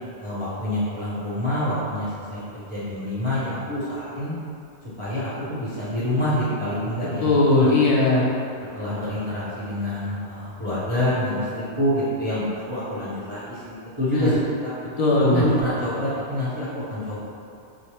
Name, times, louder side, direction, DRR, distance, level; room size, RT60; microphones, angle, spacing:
voice 1, 0.2-2.4 2.7-4.3 5.0-7.8 8.7-14.3 14.6-14.7 15.3-17.2, left 1 dB, 30° right, -12 dB, 0.7 m, -27 dB
voice 2, 7.2-8.3 14.1-14.3 15.0-15.4, left 2 dB, 45° left, -5 dB, 0.5 m, -18 dB
4.7 x 2.1 x 2.9 m, 2.5 s
omnidirectional pair, 1.2 m